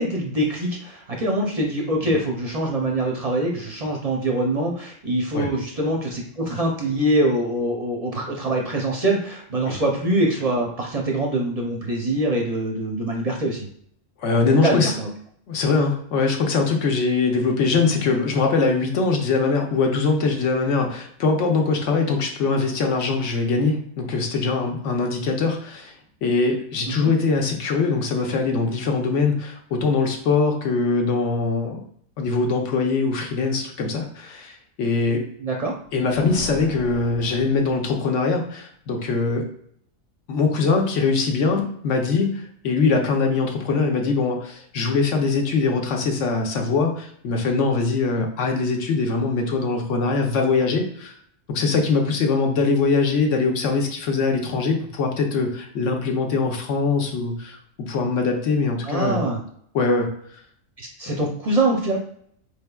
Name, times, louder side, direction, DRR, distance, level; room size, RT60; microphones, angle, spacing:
voice 1, 0.0-13.7 14.4-15.1 26.9-27.1 35.4-35.7 58.8-59.4 60.8-62.0, right 1 dB, 45° right, 0 dB, 0.5 m, -24 dB
voice 2, 14.2-14.9 15.5-25.9 26.2-31.8 32.2-35.3 35.9-39.4 40.3-51.1 51.5-57.6 57.9-59.2 59.7-60.1 61.2-61.3, left 4 dB, 65° left, 2 dB, 1.0 m, -22 dB
sound 1, 35.8-38.3, right 1 dB, 20° left, 0.4 m, -40 dB
4.5 x 3.5 x 2.3 m, 0.64 s
omnidirectional pair, 1.4 m